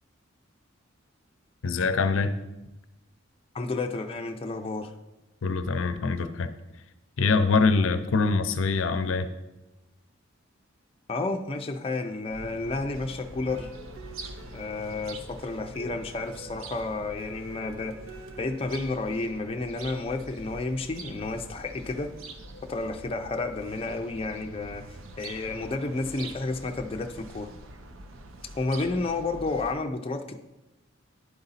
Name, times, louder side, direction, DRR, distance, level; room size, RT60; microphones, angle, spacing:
voice 1, 1.6-2.4 5.4-6.5 7.2-9.3, left 4 dB, 80° left, 0.5 m, -24 dB
voice 2, 3.5-4.9 11.1-13.7 14.5-18.0 18.4-22.1 22.6-27.5 28.5-30.4, left 3 dB, 30° left, 0.4 m, -31 dB
sound 1, 12.3-29.7, right 2 dB, 90° right, 0.7 m, -44 dB
sound 2, 13.5-20.0, right 3 dB, 70° right, 1.4 m, -48 dB
10.5 x 3.9 x 4.0 m
head